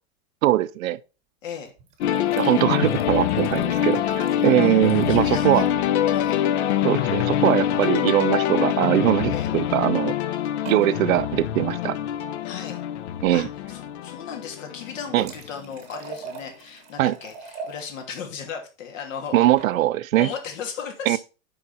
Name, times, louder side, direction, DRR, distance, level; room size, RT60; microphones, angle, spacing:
voice 1, 0.4-1.0 2.4-5.6 6.8-10.1 10.7-12.0 13.2-13.5 15.1-15.3 17.0-17.1 19.3-20.3 21.1-21.2, right 14 dB, 90° right, 0.7 m, -21 dB
voice 2, 1.4-1.7 4.4-5.6 6.1-6.4 9.3-9.5 12.4-12.8 13.3-19.5 20.2-21.2, left 6 dB, 70° left, 2.8 m, -36 dB
sound 1, 1.6-5.4 5.7-5.8 6.0-6.1 7.8-8.2 9.1-9.3 10.7-10.9 14.7-17.8 19.3-19.7, right 5 dB, 15° right, 1.0 m, -42 dB
sound 2, 2.0-15.7, left 10 dB, 55° left, 0.7 m, -25 dB
7.8 x 5.2 x 4.2 m
supercardioid pair, 180°, 40 cm